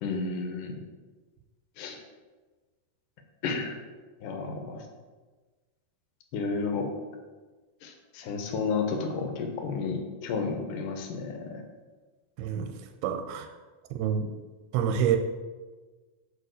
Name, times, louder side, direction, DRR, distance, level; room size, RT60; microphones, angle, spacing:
voice 1, 0.0-0.7 1.8-2.0 3.4-3.8 4.2-4.8 6.3-6.9 7.8-11.6, left 4 dB, 70° left, 4 dB, 2.2 m, -32 dB
voice 2, 12.4-12.7 13.0-13.5 13.9-14.3 14.7-15.2, right 8 dB, 90° right, 5 dB, 2.5 m, -27 dB
6.9 x 4.8 x 6.4 m, 1.3 s
omnidirectional pair, 4.4 m